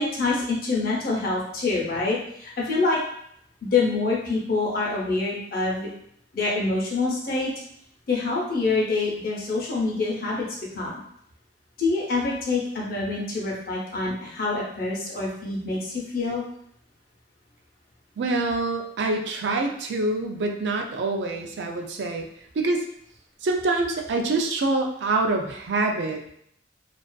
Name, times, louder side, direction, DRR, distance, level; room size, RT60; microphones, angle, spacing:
voice 1, 0.0-3.0 3.6-5.9 6.3-7.5 8.1-10.5 10.7-11.0 11.8-16.4, left 3 dB, 55° left, -3 dB, 0.7 m, -26 dB
voice 2, 18.2-22.3 22.5-22.8 23.4-26.3, right 2 dB, 70° right, 3 dB, 0.4 m, -25 dB
2.4 x 2.4 x 2.2 m, 0.69 s
head